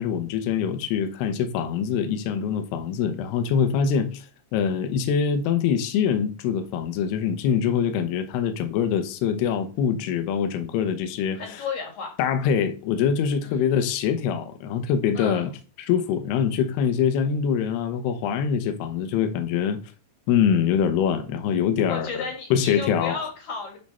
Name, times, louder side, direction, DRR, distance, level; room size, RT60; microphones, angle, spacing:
voice 1, 0.0-4.3 4.5-11.6 12.2-15.5 15.8-19.8 20.3-22.2 22.5-23.2, left 7 dB, 75° left, 2.7 m, -24 dB
voice 2, 11.3-12.2 13.4-13.6 15.1-15.5 21.9-23.8, left 5 dB, 45° left, 2.2 m, -33 dB
11.0 x 3.8 x 4.2 m
omnidirectional pair, 5.3 m